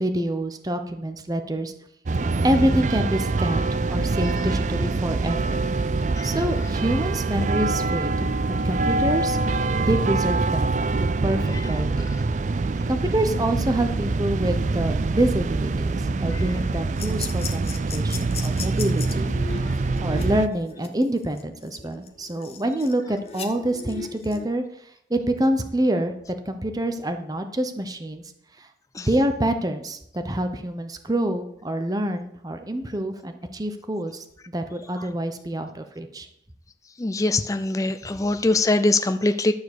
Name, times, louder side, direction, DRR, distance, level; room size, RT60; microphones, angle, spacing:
voice 1, 0.0-1.7 2.4-5.6 6.2-8.4 8.6-9.4 9.8-10.7 11.2-12.1 12.9-24.6 25.1-26.1 26.5-28.2 28.6-28.7 29.0-34.2 34.5-36.3, right 1 dB, 20° right, 6 dB, 0.8 m, -26 dB
sound 1, 2.1-20.5, right 3 dB, 45° right, 0.4 m, -25 dB
sound 2, 17.0-24.5, left 6 dB, 35° left, 1.2 m, -37 dB
voice 2, 37.0-39.5, left 2 dB, 20° left, 9 dB, 0.4 m, -22 dB
12.0 x 4.6 x 8.1 m, 0.71 s
head